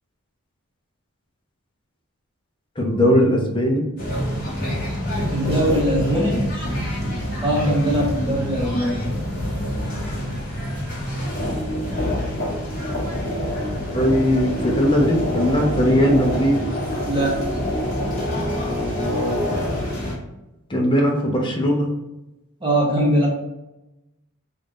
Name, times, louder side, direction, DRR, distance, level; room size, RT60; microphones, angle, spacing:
voice 1, 2.8-3.8 13.9-16.6 20.7-21.9, equal, 20° left, 0 dB, 0.6 m, -19 dB
sound 1, 4.0-20.2, equal, 40° left, 0.9 m, -26 dB
voice 2, 5.3-6.5 7.4-9.0 17.1-17.4 22.6-23.3, right 1 dB, 25° right, -3 dB, 1.0 m, -21 dB
3.1 x 2.6 x 3.6 m, 0.97 s
head